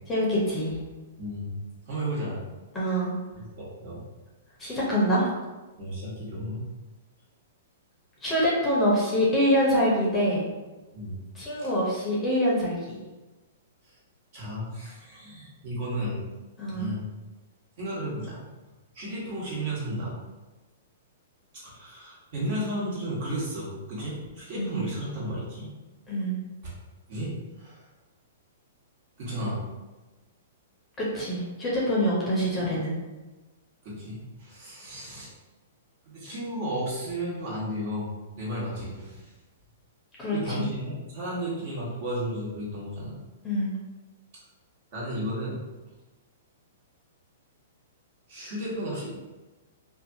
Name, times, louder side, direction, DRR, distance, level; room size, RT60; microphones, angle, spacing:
voice 1, 0.1-0.7 2.7-3.1 4.6-5.3 8.2-10.5 11.3-13.0 16.6-16.9 24.6-24.8 26.1-26.3 31.1-33.0 40.2-40.6 43.4-43.7, equal, 15° left, -6 dB, 0.7 m, -25 dB
voice 2, 1.2-1.5 1.9-2.4 3.3-4.0 5.8-6.6 10.9-11.2 13.8-14.0 14.3-16.2 16.7-17.0 17.8-18.4 18.9-20.1 21.5-25.7 27.1-27.3 27.6-27.8 29.2-29.6 33.8-35.3 36.1-38.1 38.4-39.3 40.3-43.1 44.9-45.6 48.3-49.1, equal, 50° right, -7 dB, 1.3 m, -33 dB
2.6 x 2.4 x 2.7 m, 1.2 s
hypercardioid pair, 140°, 0 cm